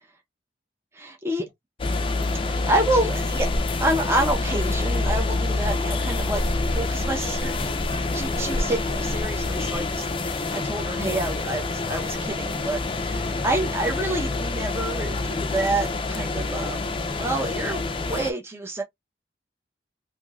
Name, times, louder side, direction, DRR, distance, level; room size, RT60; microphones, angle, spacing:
voice 1, 0.9-1.5 2.5-3.5 3.8-7.8 8.1-16.8 17.2-18.8, right 1 dB, 15° right, 0.8 m, -28 dB
sound 1, 1.8-18.3, left 2 dB, 30° left, 0.5 m, -27 dB
3.5 x 2.7 x 2.4 m
head